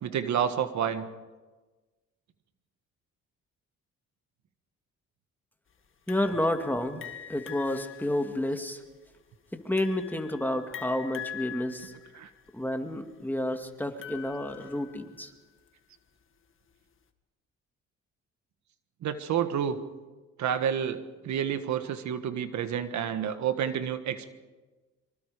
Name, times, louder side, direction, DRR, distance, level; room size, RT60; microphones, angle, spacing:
voice 1, 0.0-1.1 12.1-12.3 19.0-19.8 20.4-24.3, right 8 dB, 70° right, 10 dB, 1.5 m, -29 dB
sound 1, 6.1-15.4, left 10 dB, 45° left, 2.0 m, -44 dB
voice 2, 6.1-7.0 7.3-8.8 9.5-11.9 12.5-15.3, left 1 dB, 5° left, 5 dB, 2.2 m, -30 dB
24.5 x 24.5 x 5.1 m, 1.2 s
cardioid pair, 90°, 30 cm